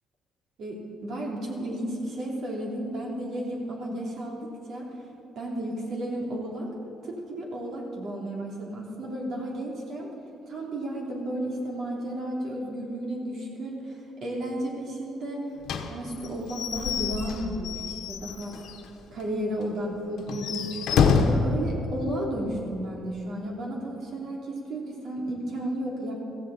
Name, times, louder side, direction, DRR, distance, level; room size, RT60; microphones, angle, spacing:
voice 1, 0.6-4.8 5.3-6.7 7.3-10.1 10.5-15.4 15.9-18.6 19.1-20.8 21.2-26.1, right 1 dB, 55° right, -2 dB, 3.2 m, -33 dB
Slam / Squeak / Wood, 15.6-18.9 19.2-19.3 19.6-19.7 20.2-21.5, left 5 dB, 70° left, 1.2 m, -27 dB
16.0 x 14.5 x 4.2 m, 2.9 s
cardioid pair, 135°, 0 cm